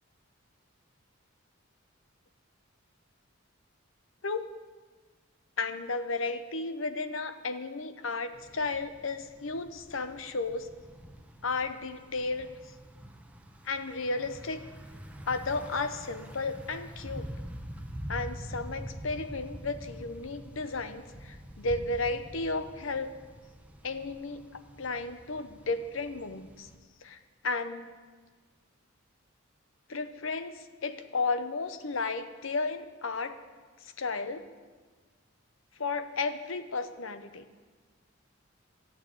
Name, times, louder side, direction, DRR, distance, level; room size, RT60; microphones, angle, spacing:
voice 1, 5.6-10.7 11.4-12.5 13.6-14.7 15.3-17.3 18.1-23.1 23.8-24.4 24.8-26.7 27.0-27.9 29.9-33.4 33.8-34.4 35.8-37.4, left 3 dB, 70° left, 11 dB, 0.9 m, -33 dB
Thunder / Bicycle, 8.3-26.7, equal, 5° right, 0.9 m, -45 dB
13.0 x 9.1 x 8.3 m, 1.4 s
head